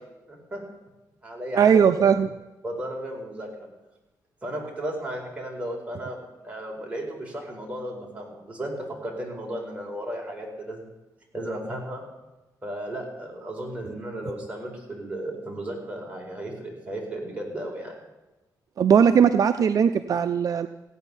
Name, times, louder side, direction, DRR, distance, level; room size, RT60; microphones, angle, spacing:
voice 1, 0.3-0.6 1.2-2.1 2.6-3.7 4.4-6.2 6.4-8.7 9.0-10.8 11.3-12.0 12.6-17.9, right 1 dB, 20° right, -1 dB, 4.8 m, -34 dB
voice 2, 1.6-2.3 18.8-20.7, right 7 dB, 55° right, 10 dB, 0.5 m, -19 dB
16.5 x 9.1 x 7.0 m, 1.1 s
cardioid pair, 105°, 7 cm